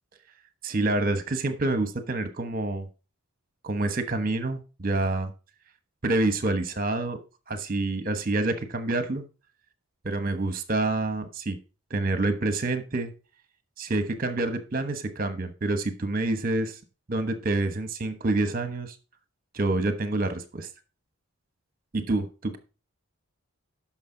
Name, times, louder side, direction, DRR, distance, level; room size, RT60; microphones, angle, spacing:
voice 1, 0.6-2.9 3.6-5.3 6.0-7.2 7.5-9.2 10.0-11.6 11.9-13.1 13.8-16.8 17.1-19.0 19.5-20.7 21.9-22.6, right 2 dB, 40° right, 9 dB, 1.1 m, -27 dB
10.5 x 6.1 x 3.9 m, 0.33 s
head